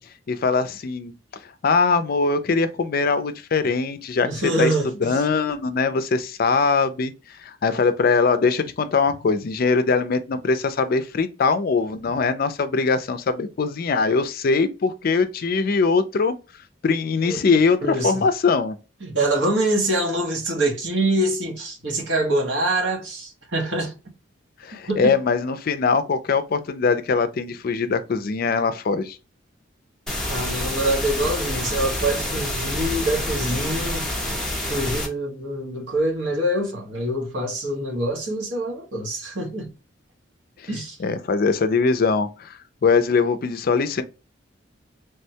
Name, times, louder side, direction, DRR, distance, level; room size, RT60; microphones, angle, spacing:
voice 1, 0.3-1.1 1.6-4.3 4.6-4.7 5.0-7.1 7.4-16.3 16.8-18.8 24.6-29.2 41.0-44.0, left 4 dB, 50° left, 0.4 m, -21 dB
voice 2, 4.2-5.2 17.3-17.4 17.8-18.3 19.0-23.9 24.9-25.1 30.3-34.1 34.7-39.7 40.7-41.0, right 1 dB, 70° right, 1.1 m, -25 dB
sound 1, 30.1-35.1, left 1 dB, ahead, 0.8 m, -27 dB
3.4 x 2.2 x 2.7 m
head